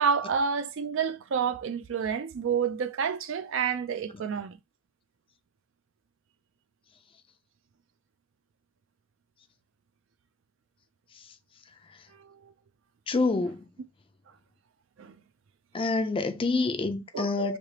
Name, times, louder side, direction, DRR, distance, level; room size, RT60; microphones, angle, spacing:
voice 1, 0.0-4.6 12.1-12.5 15.0-15.2 17.1-17.6, right 6 dB, 60° right, 0.4 m, -29 dB
voice 2, 13.1-13.7 15.7-17.6, left 3 dB, 25° left, 0.4 m, -27 dB
3.2 x 2.9 x 2.8 m
head